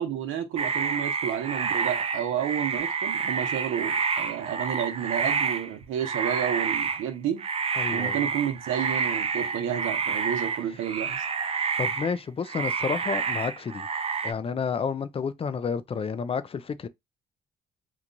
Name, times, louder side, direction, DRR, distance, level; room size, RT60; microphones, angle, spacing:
voice 1, 0.0-7.4 7.9-11.2, right 9 dB, 85° right, 0.9 m, -31 dB
sound 1, 0.6-5.7 6.0-7.1 7.4-12.2 12.5-14.3, right 5 dB, 30° right, 0.4 m, -29 dB
voice 2, 7.8-8.2 11.8-13.9 14.2-16.9, left 6 dB, 30° left, 0.4 m, -30 dB
3.0 x 2.3 x 3.8 m
cardioid pair, 90°, 20 cm